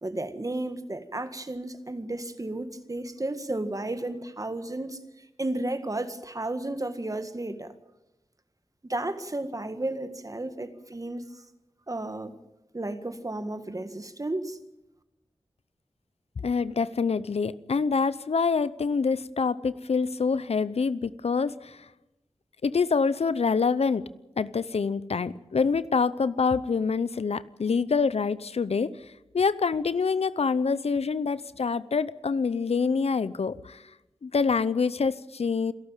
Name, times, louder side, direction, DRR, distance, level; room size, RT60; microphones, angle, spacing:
voice 1, 0.0-7.7 8.8-11.4 11.9-12.3 12.7-14.6, right 2 dB, 35° right, 1.8 m, -33 dB
voice 2, 16.4-21.8 22.6-24.1 24.4-28.9 29.3-33.8 34.2-35.7, left 5 dB, 80° left, 0.7 m, -26 dB
27.0 x 12.5 x 9.0 m
wide cardioid pair, 65°, 10 cm